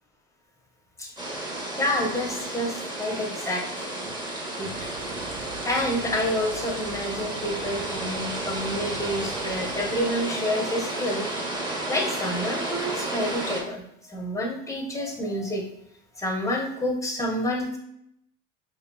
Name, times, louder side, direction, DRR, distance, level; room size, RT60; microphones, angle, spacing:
sound 1, 1.2-13.6, right 2 dB, 10° right, 1.0 m, -32 dB
voice 1, 1.8-4.1 4.6-4.9 5.3-13.8 14.1-15.7 16.2-17.8, left 1 dB, 10° left, 0 dB, 0.9 m, -29 dB
sound 2, 4.7-10.0, right 5 dB, 55° right, 0.6 m, -41 dB
4.8 x 2.9 x 2.3 m, 0.74 s
hypercardioid pair, 75°, 39 cm